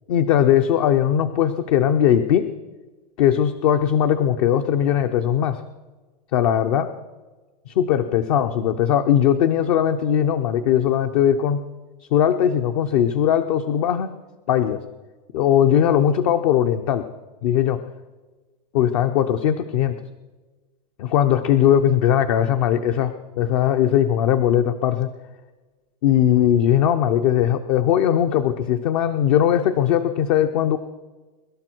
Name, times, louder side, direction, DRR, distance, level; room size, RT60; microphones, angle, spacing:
voice 1, 0.1-2.5 3.2-5.6 6.3-6.9 7.7-11.6 12.0-14.1 14.5-14.8 15.3-17.1 17.4-17.8 18.7-19.9 21.0-25.1 26.0-30.8, left 10 dB, 55° left, 8 dB, 0.9 m, -19 dB
24.0 x 12.0 x 4.6 m, 1.3 s
supercardioid pair, 145°, 21 cm